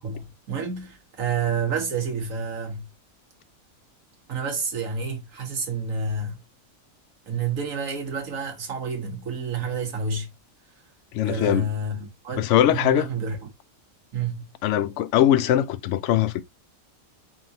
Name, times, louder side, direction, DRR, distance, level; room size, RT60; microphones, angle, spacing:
voice 1, 0.0-2.9 4.3-6.4 7.3-10.3 11.2-13.4 14.1-14.5, right 4 dB, 70° right, 1.5 m, -29 dB
voice 2, 11.1-11.7 12.4-13.1 14.6-16.4, left 11 dB, 70° left, 0.8 m, -21 dB
4.6 x 3.6 x 2.6 m
omnidirectional pair, 1.5 m